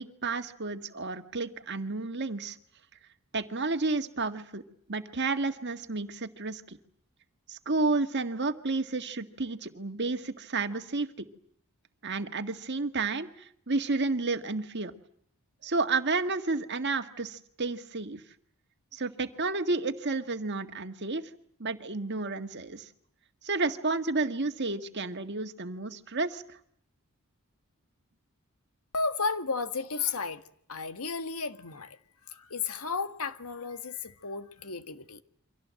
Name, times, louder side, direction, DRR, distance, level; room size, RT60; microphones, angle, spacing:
voice 1, 0.0-2.6 3.3-4.6 4.9-6.8 7.5-11.1 12.0-14.9 15.6-18.2 18.9-21.2 21.6-22.9 23.4-26.6, right 3 dB, 50° right, 1.8 m, -31 dB
voice 2, 28.9-30.4 30.7-32.0 32.3-35.2, left 4 dB, 75° left, 1.7 m, -33 dB
29.0 x 25.0 x 7.7 m
head